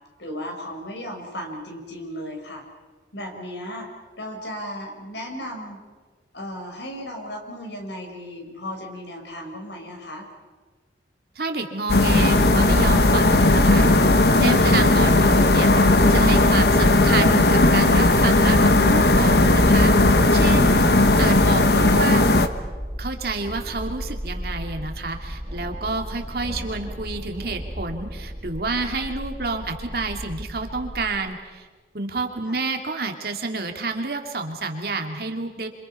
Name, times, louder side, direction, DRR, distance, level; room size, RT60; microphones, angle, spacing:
voice 1, 0.2-2.6 3.1-3.9 4.2-5.8 6.3-10.3 32.4-32.6, equal, 80° left, 3 dB, 5.1 m, -35 dB
voice 2, 11.4-20.8 21.2-22.3 23.0-31.7 31.9-35.7, right 3 dB, 55° right, 3 dB, 2.5 m, -29 dB
sound 1, 11.9-22.5, left 2 dB, 60° left, 1.2 m, -16 dB
sound 2, 16.1-31.1, equal, 30° right, 2.5 m, -34 dB
27.0 x 27.0 x 5.6 m, 1.4 s
head